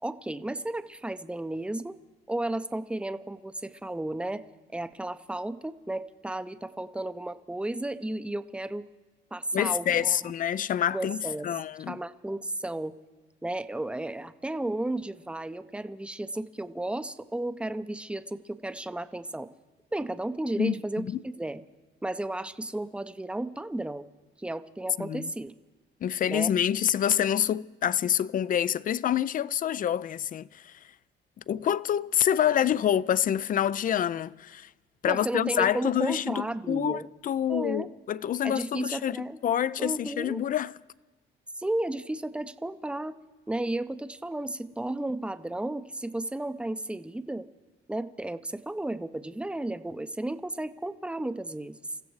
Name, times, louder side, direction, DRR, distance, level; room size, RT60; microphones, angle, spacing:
voice 1, 0.0-2.0 2.3-4.4 4.7-8.8 9.3-10.2 10.9-11.6 11.9-13.0 13.4-19.5 19.9-21.6 22.0-24.1 24.4-25.5 26.3-26.5 35.0-37.1 37.5-37.9 38.4-39.4 39.8-40.4 41.6-43.2 43.5-47.5 47.9-51.8, right 1 dB, 5° right, 0.6 m, -33 dB
voice 2, 9.5-11.2 11.4-12.0 20.6-21.2 25.0-25.3 26.0-30.8 31.5-34.7 35.0-40.7, left 10 dB, 45° left, 0.4 m, -27 dB
29.5 x 15.0 x 3.2 m
cardioid pair, 90°, 20 cm